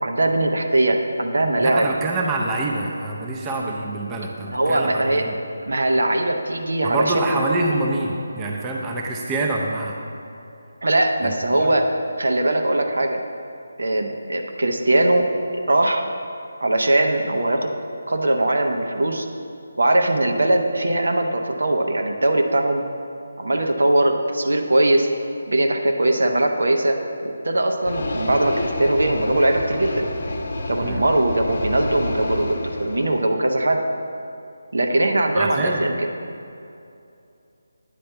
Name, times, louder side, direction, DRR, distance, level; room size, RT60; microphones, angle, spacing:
voice 1, 0.0-1.9 4.4-5.3 5.7-7.4 10.8-11.9 12.2-13.2 13.8-15.3 15.5-16.0 16.6-17.7 18.1-19.3 19.8-22.8 23.4-25.1 25.5-30.0 30.7-33.8 34.7-36.1, right 1 dB, 65° right, 4 dB, 0.8 m, -20 dB
voice 2, 1.6-5.4 6.8-10.0 11.2-11.3 30.8-31.0 35.4-35.8, right 2 dB, 15° right, -1 dB, 0.6 m, -26 dB
sound 1, 27.8-33.3, left 1 dB, 50° left, 0.8 m, -28 dB
9.2 x 4.3 x 6.8 m, 2.6 s
figure-of-eight pair, 150°, 0 cm